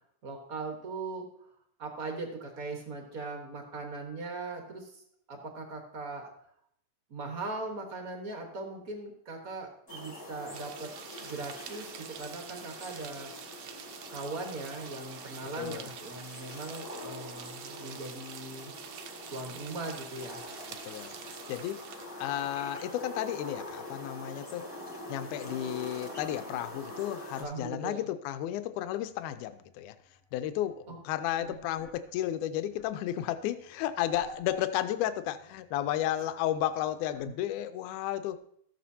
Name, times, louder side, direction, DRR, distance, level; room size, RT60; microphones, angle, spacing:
voice 1, 0.2-1.5 1.8-5.0 5.3-6.3 7.1-10.9 11.2-13.8 14.1-18.7 19.3-20.4 27.4-28.1 30.9-31.0 31.4-31.6 37.2-37.3, right 3 dB, 50° right, 2 dB, 1.0 m, -40 dB
sound 1, 9.9-27.4, left 1 dB, 10° left, 1.4 m, -44 dB
sound 2, 10.5-22.2, right 9 dB, 75° right, 1.4 m, -47 dB
voice 2, 15.6-15.9 20.8-21.1 21.5-21.8 22.2-24.7 25.1-30.0 30.3-38.4, left 12 dB, 85° left, 11 dB, 2.0 m, -33 dB
sound 3, 28.5-37.4, left 2 dB, 65° left, 0.8 m, -54 dB
14.5 x 7.5 x 2.7 m, 0.69 s
omnidirectional pair, 3.5 m